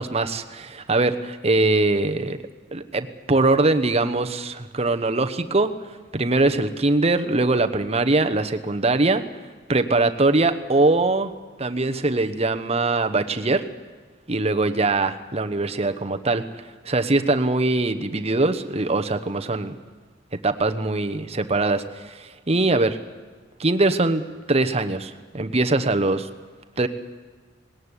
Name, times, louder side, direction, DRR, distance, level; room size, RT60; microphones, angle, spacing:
voice 1, 0.0-2.4 2.7-5.7 6.1-9.2 9.7-11.3 11.6-13.6 14.3-16.4 16.8-19.8 20.3-23.0 23.6-26.3 26.8-26.9, right 2 dB, 35° right, 8 dB, 1.0 m, -22 dB
19.5 x 18.5 x 9.8 m, 1.4 s
head